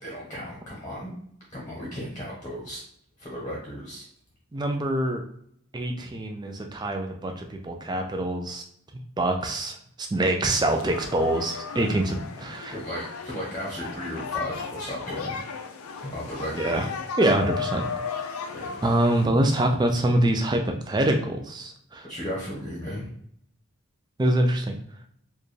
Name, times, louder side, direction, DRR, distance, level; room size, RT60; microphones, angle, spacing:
voice 1, 0.0-1.1 1.5-2.8 3.2-4.0 12.7-15.4 16.0-16.8 18.5-18.7 22.0-23.1, equal, 20° left, -5 dB, 0.9 m, -35 dB
voice 2, 4.5-5.2 5.7-8.6 9.2-12.8 16.5-16.9 17.2-17.9 18.8-22.1 24.2-24.8, right 1 dB, 20° right, 4 dB, 0.4 m, -25 dB
sound 1, 10.5-19.3, left 5 dB, 85° left, 0.5 m, -35 dB
4.4 x 2.3 x 3.2 m, 0.68 s
head